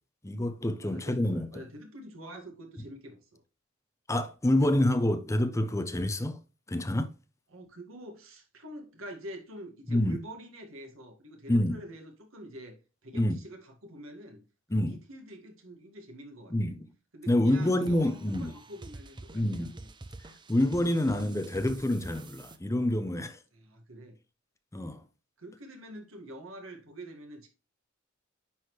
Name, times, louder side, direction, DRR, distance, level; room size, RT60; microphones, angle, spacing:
voice 1, 0.2-1.6 4.1-6.4 6.7-7.1 9.9-10.2 11.5-11.8 13.1-13.4 14.7-15.0 16.5-16.9 17.3-18.5 19.3-19.7 20.5-23.4 24.7-25.0, left 1 dB, 15° left, 0.7 m, -27 dB
voice 2, 0.8-3.4 7.5-12.8 13.0-14.4 14.7-16.7 17.1-19.9 23.5-24.2 25.4-27.5, right 1 dB, 85° right, 1.9 m, -46 dB
sound 1, 17.4-22.6, right 2 dB, 25° right, 0.6 m, -47 dB
9.8 x 4.2 x 3.1 m
head